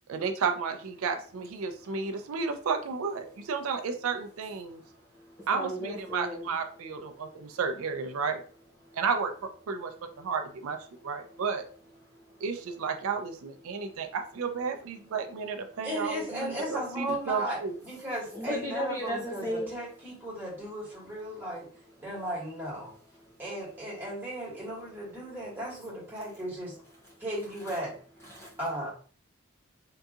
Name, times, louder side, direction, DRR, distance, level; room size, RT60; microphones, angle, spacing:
voice 1, 0.1-4.8 5.5-8.4 8.9-9.9 10.2-10.8 11.0-11.6 12.4-17.7, right 5 dB, 75° right, 7 dB, 0.4 m, -32 dB
voice 2, 1.8-2.3 4.6-6.5 7.2-7.6 8.8-9.0 9.9-10.3 12.1-12.4 13.6-14.0 18.3-19.7 23.2-23.4 27.1-27.2 27.6-27.8 28.2-28.6, equal, 10° left, -4 dB, 0.6 m, -38 dB
voice 3, 15.8-21.7 22.0-22.9 23.4-26.7 27.2-27.9 28.6-28.9, right 1 dB, 10° right, -6 dB, 1.5 m, -36 dB
3.7 x 2.7 x 2.3 m, 0.42 s
head